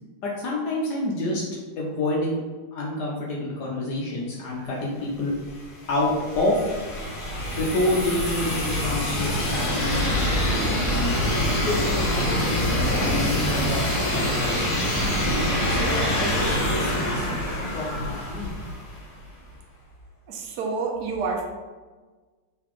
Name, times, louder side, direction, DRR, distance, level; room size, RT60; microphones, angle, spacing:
voice 1, 0.2-1.4 1.8-2.4 2.7-5.3 5.9-6.6 7.5-10.0 10.6-11.1 11.4-14.8 15.7-17.3 17.7-18.5, left 1 dB, 70° left, -3 dB, 1.0 m, -28 dB
sound 1, 5.4-19.1, left 1 dB, 50° left, 1.2 m, -25 dB
voice 2, 20.3-21.4, right 4 dB, 75° right, 0 dB, 0.9 m, -28 dB
3.9 x 3.7 x 3.0 m, 1.4 s
omnidirectional pair, 2.4 m